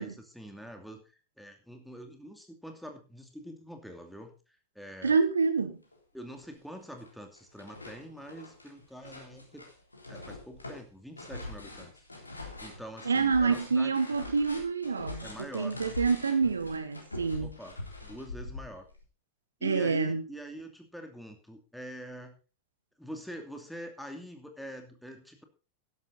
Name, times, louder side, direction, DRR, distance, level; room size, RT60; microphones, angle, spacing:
voice 1, 0.0-4.3 4.7-5.2 6.1-9.7 10.1-12.0 12.6-13.9 15.2-16.0 17.3-18.9 19.6-22.4 23.0-25.4, equal, ahead, 2.6 m, -45 dB
voice 2, 5.0-5.8 13.0-17.5 19.6-20.2, right 4 dB, 75° right, 1.3 m, -27 dB
sound 1, 5.9-6.0 6.4-7.1 7.4-19.0, left 3 dB, 80° left, 3.5 m, -44 dB
13.0 x 11.0 x 4.1 m
figure-of-eight pair, 90°, 0 cm